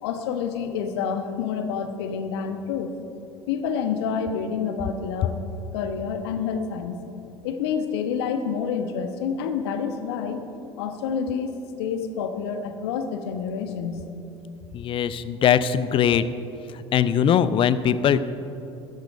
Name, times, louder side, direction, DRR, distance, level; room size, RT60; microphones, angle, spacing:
voice 1, 0.0-2.9 3.5-5.4 5.7-7.0 7.4-10.4 10.8-14.0, left 6 dB, 65° left, 7 dB, 1.1 m, -28 dB
voice 2, 14.7-16.2 16.9-18.2, left 9 dB, 35° left, 14 dB, 0.6 m, -20 dB
14.5 x 10.5 x 5.1 m, 2.8 s
figure-of-eight pair, 65°, 15 cm